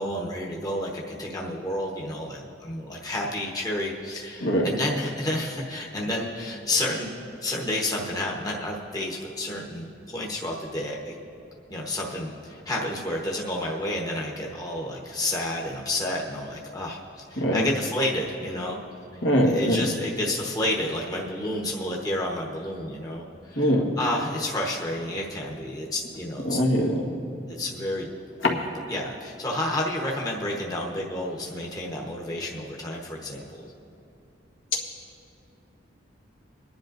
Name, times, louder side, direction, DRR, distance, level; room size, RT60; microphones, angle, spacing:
voice 1, 0.0-11.1 11.7-18.8 19.4-26.6 27.5-28.1 28.4-33.7, left 1 dB, 20° left, -2 dB, 1.1 m, -30 dB
voice 2, 17.4-17.7 19.2-19.9 23.5-24.0 26.4-27.1 28.4-28.6, equal, 75° left, -1 dB, 1.5 m, -22 dB
23.0 x 10.5 x 2.6 m, 2.6 s
head